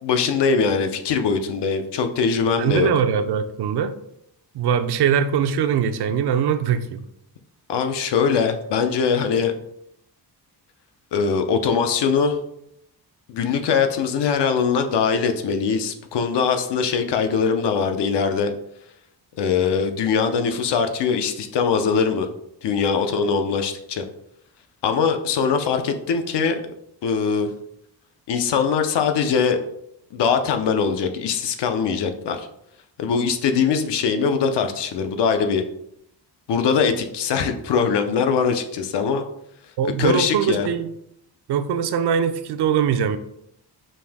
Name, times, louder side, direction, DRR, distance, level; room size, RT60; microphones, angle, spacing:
voice 1, 0.0-2.9 7.7-9.5 11.1-12.4 13.3-18.5 19.4-22.3 22.6-24.0 24.8-26.6 27.0-27.5 28.3-29.6 30.1-32.5 33.0-35.6 36.5-39.2 39.8-40.7, left 6 dB, 80° left, 7 dB, 0.7 m, -22 dB
voice 2, 2.6-3.9 4.5-7.0 39.8-40.9 41.5-43.2, right 7 dB, 75° right, 10 dB, 0.5 m, -21 dB
5.5 x 2.6 x 3.5 m, 0.76 s
wide cardioid pair, 175°, 41 cm